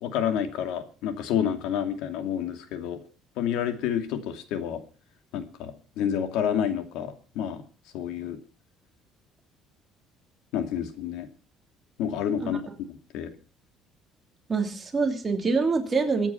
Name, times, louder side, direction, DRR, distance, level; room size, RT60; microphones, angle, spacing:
voice 1, 0.0-3.0 3.4-4.8 5.3-7.6 7.9-8.4 10.5-11.3 12.0-12.6 13.1-13.3, left 9 dB, 80° left, 7 dB, 2.5 m, -29 dB
voice 2, 14.5-16.3, right 4 dB, 20° right, 3 dB, 2.8 m, -25 dB
23.0 x 9.1 x 5.8 m, 0.38 s
cardioid pair, 165°, 0 cm